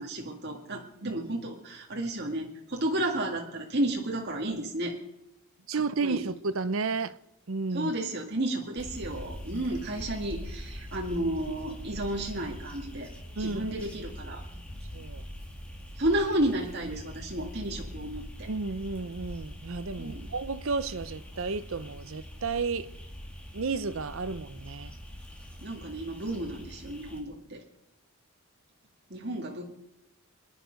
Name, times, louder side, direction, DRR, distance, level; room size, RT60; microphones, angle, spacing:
voice 1, 0.0-4.9 5.7-6.2 7.7-13.1 13.4-14.4 16.0-18.5 20.0-20.3 25.6-27.6 29.1-29.6, right 1 dB, 50° right, 2.0 m, -32 dB
voice 2, 5.7-7.2 7.5-7.9 13.4-13.7 14.9-15.2 18.5-22.9 23.5-24.9, right 4 dB, 70° right, 0.7 m, -32 dB
sound 1, 8.8-27.2, equal, 5° left, 2.5 m, -43 dB
26.0 x 10.5 x 5.2 m
head